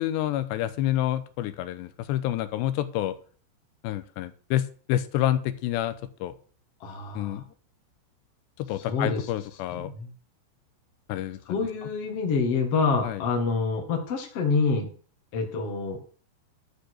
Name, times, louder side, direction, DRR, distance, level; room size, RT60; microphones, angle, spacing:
voice 1, 0.0-3.1 3.8-6.3 7.2-7.4 8.6-9.9 11.1-11.6 13.0-13.2, left 13 dB, 75° left, 11 dB, 2.8 m, -28 dB
voice 2, 6.8-7.4 8.9-9.3 9.7-10.1 11.5-14.9 15.3-16.0, left 4 dB, 45° left, 1 dB, 2.0 m, -27 dB
12.0 x 5.4 x 6.3 m, 0.42 s
omnidirectional pair, 5.5 m